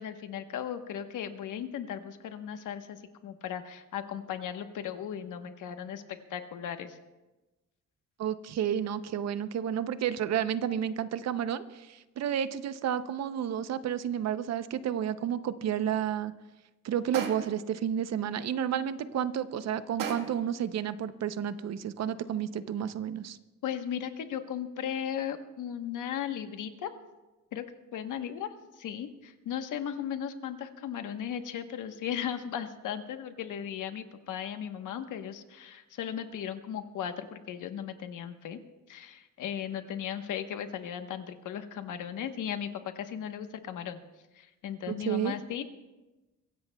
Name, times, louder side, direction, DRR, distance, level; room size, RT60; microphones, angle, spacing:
voice 1, 0.0-7.0 23.6-26.9 27.5-27.7 27.9-28.5 28.8-38.6 38.9-44.0 44.3-45.6, left 9 dB, 75° left, 8 dB, 1.1 m, -36 dB
voice 2, 8.2-16.3 16.8-23.4 44.9-45.3, right 9 dB, 55° right, 13 dB, 0.6 m, -31 dB
sound 1, 17.1-17.7 20.0-20.5, right 7 dB, 85° right, 1.5 m, -36 dB
23.5 x 16.5 x 2.2 m, 1.1 s
cardioid pair, 170°, 31 cm